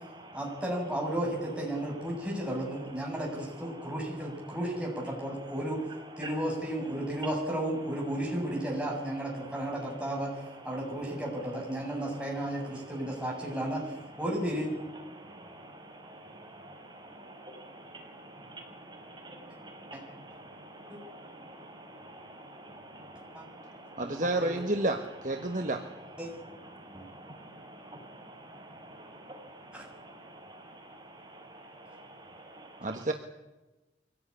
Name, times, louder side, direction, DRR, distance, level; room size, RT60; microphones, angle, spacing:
voice 1, 0.3-5.8 6.2-10.3 10.6-14.7 19.9-20.0 20.9-21.0 23.3-23.4 24.0-24.5 26.2-26.3 26.9-27.1 29.7-29.9, right 1 dB, 5° right, -3 dB, 7.4 m, -33 dB
voice 2, 15.1-24.0 25.4-25.7 26.2-32.9, right 1 dB, 25° right, 1 dB, 5.9 m, -48 dB
voice 3, 24.0-25.9 32.8-33.1, right 2 dB, 45° right, 4 dB, 1.4 m, -30 dB
24.0 x 17.5 x 9.9 m, 1.1 s
head